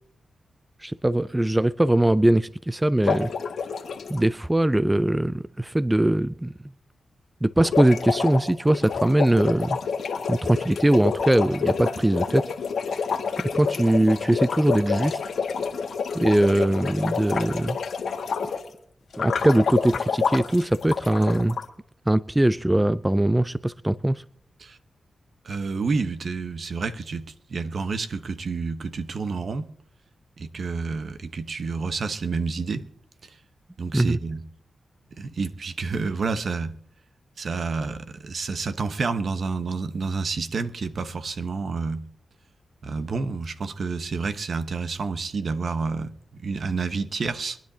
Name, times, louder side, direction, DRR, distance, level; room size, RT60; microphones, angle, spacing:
voice 1, 0.8-3.3 4.1-6.5 7.4-9.8 10.3-12.4 13.5-15.2 16.1-17.8 19.2-21.6 22.1-24.2 33.9-34.2, right 1 dB, 15° right, 0.5 m, -21 dB
sound 1, 3.0-4.2 7.6-18.7 19.1-21.6, left 5 dB, 80° left, 1.6 m, -28 dB
voice 2, 25.4-29.7 30.4-32.9 33.2-33.4 33.8-34.4 35.2-36.7 37.4-42.0 42.8-46.1 46.4-47.6, right 4 dB, 65° right, 1.1 m, -29 dB
24.0 x 10.5 x 2.8 m
cardioid pair, 60°, 0 cm